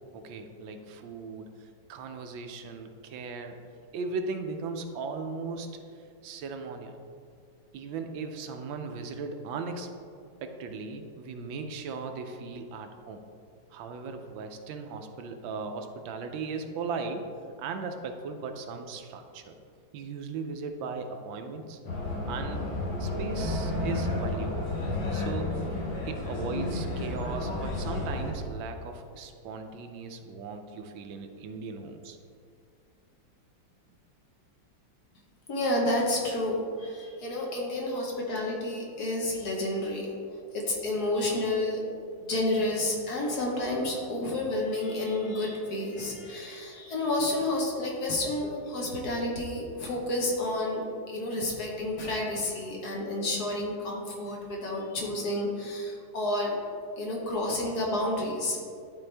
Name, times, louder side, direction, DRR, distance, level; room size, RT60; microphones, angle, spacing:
voice 1, 0.1-3.6 3.9-7.0 7.7-9.9 10.4-13.2 13.7-17.3 17.6-19.6 19.9-21.8 22.2-22.7 23.0-24.6 25.1-25.6 26.1-32.2, right 4 dB, 85° right, 6 dB, 1.4 m, -37 dB
sound 1, 21.9-28.3, left 2 dB, 75° left, 1.8 m, -32 dB
sound 2, 23.0-28.0, equal, 65° right, 0.4 m, -41 dB
voice 2, 35.5-41.9 42.2-56.6 57.0-58.6, left 1 dB, 55° left, -2 dB, 1.6 m, -30 dB
11.5 x 4.1 x 3.3 m, 2.4 s
omnidirectional pair, 2.1 m